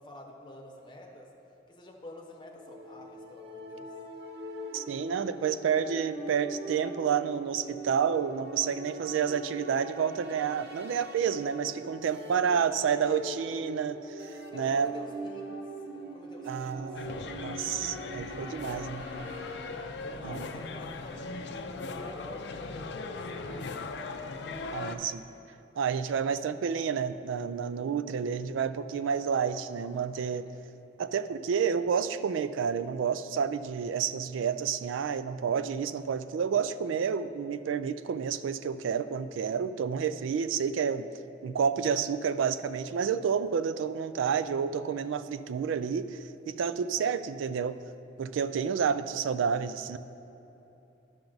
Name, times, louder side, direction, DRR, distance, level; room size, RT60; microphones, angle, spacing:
voice 1, 0.0-1.3 1.7-3.9 12.5-13.2 14.5-15.6 15.9-17.1 18.6-19.1 20.0-21.4 21.8-23.8 26.2-26.3 29.5-30.1 30.5-30.7 47.0-47.2, left 1 dB, 25° left, 0 dB, 0.8 m, -49 dB
sound 1, 2.6-19.8, right 1 dB, 55° right, 0.7 m, -42 dB
voice 2, 4.7-14.9 16.5-19.1 20.2-20.4 24.7-25.2 25.8-30.5 31.0-41.1 41.4-46.2 46.5-47.8 48.2-50.0, right 7 dB, 90° right, 13 dB, 0.3 m, -30 dB
sound 2, 16.9-25.0, left 3 dB, 65° left, 0.4 m, -39 dB
11.5 x 5.8 x 3.9 m, 3.0 s
head